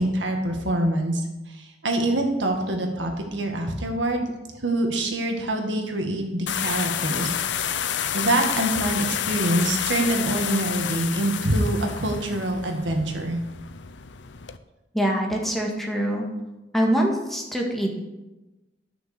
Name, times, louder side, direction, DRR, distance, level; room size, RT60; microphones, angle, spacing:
voice 1, 0.0-4.3 4.6-7.3 8.1-13.4, right 1 dB, 85° right, 3 dB, 1.9 m, -25 dB
sound 1, 6.5-14.6, left 9 dB, 75° left, 0.6 m, -29 dB
voice 2, 14.9-16.2 16.7-17.9, equal, ahead, -1 dB, 1.7 m, -24 dB
11.5 x 6.5 x 6.7 m, 1.0 s
head